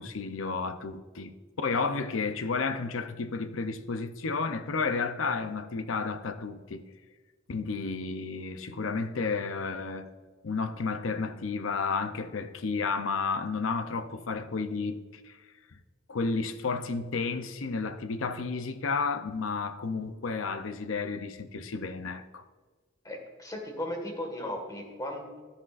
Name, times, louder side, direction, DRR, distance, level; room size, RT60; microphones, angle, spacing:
voice 1, 0.0-6.8 7.5-10.1 10.4-15.0 15.2-15.4 16.1-22.4, left 4 dB, 75° left, 0.6 m, -32 dB
voice 2, 23.0-25.4, left 1 dB, 20° left, 1.7 m, -36 dB
12.0 x 9.5 x 2.5 m
head